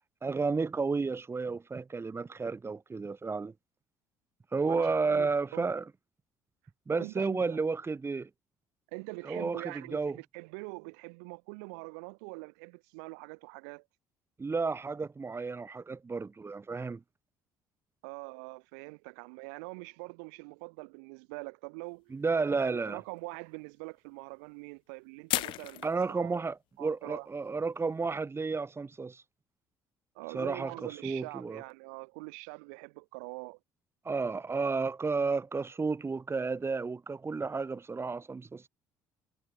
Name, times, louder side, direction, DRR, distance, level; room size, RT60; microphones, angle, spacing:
voice 1, 0.2-3.5 4.5-5.8 6.9-8.3 9.2-10.2 14.4-17.0 22.1-23.0 25.8-29.2 30.3-31.6 34.0-38.7, right 4 dB, 30° right, 6.5 m, -32 dB
voice 2, 4.7-5.6 6.9-7.6 8.9-13.8 18.0-22.1 22.6-26.4 26.8-27.3 30.1-33.6, right 34 dB, 90° right, 5.0 m, -44 dB
sound 1, 22.6-22.7 25.3-26.0, left 18 dB, 75° left, 0.8 m, -32 dB
supercardioid pair, 70°, 9 cm